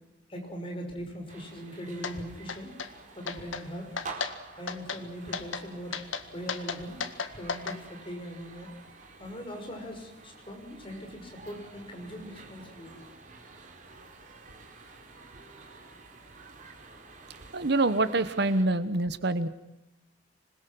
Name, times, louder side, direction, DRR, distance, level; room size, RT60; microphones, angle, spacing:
voice 1, 0.3-2.7 3.1-3.9 4.5-6.0 6.3-7.0 7.3-8.7 9.2-13.0, equal, 30° left, 2 dB, 6.3 m, -40 dB
sound 1, 1.3-18.6, right 3 dB, 40° right, 4.1 m, -49 dB
sound 2, 2.0-2.2 2.5-2.9 3.3-3.6 4.0-4.3 4.7-5.0 5.3-5.6 5.9-7.8, left 5 dB, 85° left, 1.8 m, -34 dB
voice 2, 17.5-19.5, right 2 dB, 60° right, 13 dB, 1.2 m, -26 dB
26.5 x 21.5 x 6.2 m, 0.93 s
head